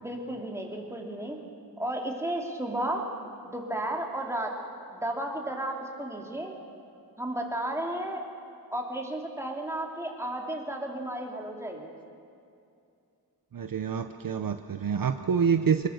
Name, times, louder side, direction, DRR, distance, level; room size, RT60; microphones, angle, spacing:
voice 1, 0.0-1.4 1.8-3.1 3.4-4.6 4.9-6.5 7.2-8.2 8.7-11.9, right 1 dB, 5° right, 0 dB, 2.9 m, -33 dB
voice 2, 13.5-15.9, right 6 dB, 55° right, 8 dB, 0.8 m, -27 dB
25.0 x 20.5 x 6.6 m, 2.5 s
wide cardioid pair, 115°, 40 cm